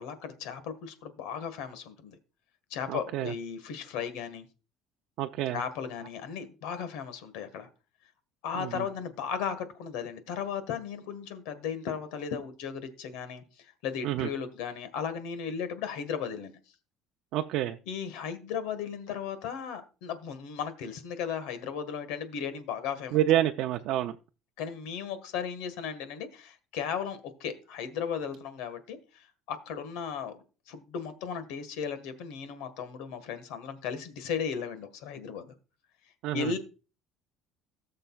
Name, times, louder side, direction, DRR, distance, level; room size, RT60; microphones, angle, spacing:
voice 1, 0.0-2.2 2.7-4.5 5.5-7.7 8.4-16.6 17.8-23.2 24.6-30.4 30.7-35.5 36.3-36.6, left 7 dB, 85° left, 11 dB, 1.6 m, -36 dB
voice 2, 2.9-3.3 5.2-5.6 8.6-8.8 14.0-14.3 17.3-17.8 23.1-24.1 36.2-36.5, right 13 dB, 65° right, 4 dB, 0.6 m, -28 dB
18.0 x 6.6 x 2.4 m, 0.33 s
cardioid pair, 140°, 0 cm